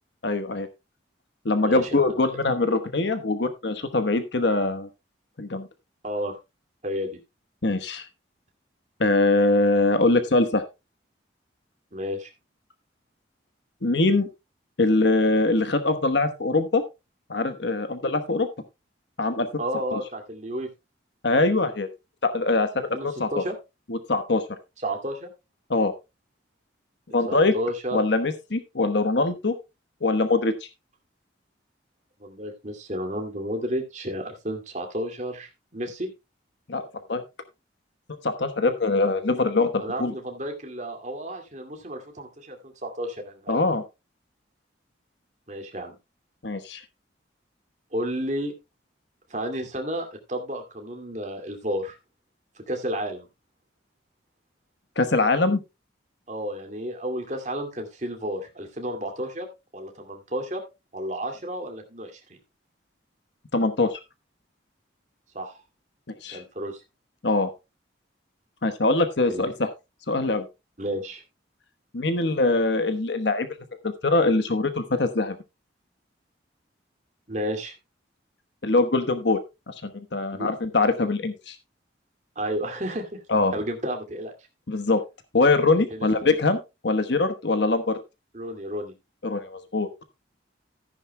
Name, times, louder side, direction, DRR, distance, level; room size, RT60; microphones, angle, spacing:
voice 1, 0.2-0.7 1.4-4.9 5.4-5.7 7.6-8.1 9.0-10.6 13.8-14.3 14.8-16.8 17.3-18.5 19.2-19.6 19.9-20.0 21.2-21.9 22.2-23.3 23.9-24.4 25.7-25.9 27.1-27.5 27.9-29.5 30.0-30.5 36.7-37.2 38.2-40.1 43.5-43.8 46.4-46.8 55.0-55.6 63.5-64.0 66.2-66.4 67.2-67.5 68.6-69.7 70.1-70.5 71.9-73.5 74.0-75.4 78.6-79.4 79.7-81.5 83.3-83.5 84.7-85.0 85.3-86.6 86.8-88.0 89.2-90.0, left 3 dB, 65° left, 9 dB, 1.1 m, -23 dB
voice 2, 1.6-2.2 6.0-6.4 6.8-7.2 11.9-12.3 19.6-20.7 22.9-23.5 24.8-25.3 27.3-28.0 32.2-36.1 39.8-43.7 45.5-46.0 47.9-48.5 49.3-52.0 52.6-53.3 56.3-59.5 59.7-60.6 60.9-62.2 65.3-65.5 66.3-66.8 69.3-69.5 70.8-71.2 77.3-77.7 80.3-80.5 82.4-83.2 83.5-84.3 85.9-86.3 88.3-88.9, equal, 40° right, 4 dB, 2.2 m, -32 dB
14.0 x 10.5 x 2.2 m, 0.24 s
head